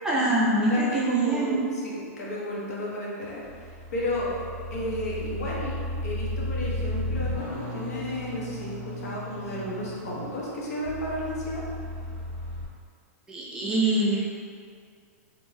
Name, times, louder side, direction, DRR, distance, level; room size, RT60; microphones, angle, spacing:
voice 1, 0.0-1.6 13.3-14.2, right 2 dB, 10° right, -6 dB, 0.3 m, -24 dB
voice 2, 0.7-11.6, left 1 dB, 80° left, -5 dB, 0.8 m, -33 dB
sound 1, 3.2-12.6, equal, 35° left, 0.9 m, -34 dB
2.6 x 2.2 x 3.1 m, 2.1 s
supercardioid pair, 160°, 8 cm